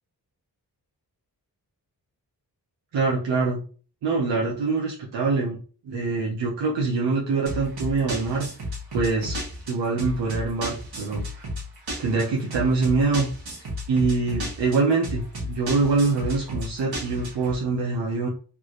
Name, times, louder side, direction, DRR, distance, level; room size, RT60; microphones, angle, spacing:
voice 1, 2.9-3.6 4.0-5.6 5.8-8.5 8.9-9.4 9.7-11.4 12.0-13.3 13.9-18.3, right 4 dB, 85° right, -3 dB, 0.8 m, -24 dB
sound 1, 7.5-17.6, equal, 60° right, 1.4 m, -33 dB
3.4 x 2.4 x 3.1 m, 0.39 s
cardioid pair, 50°, 41 cm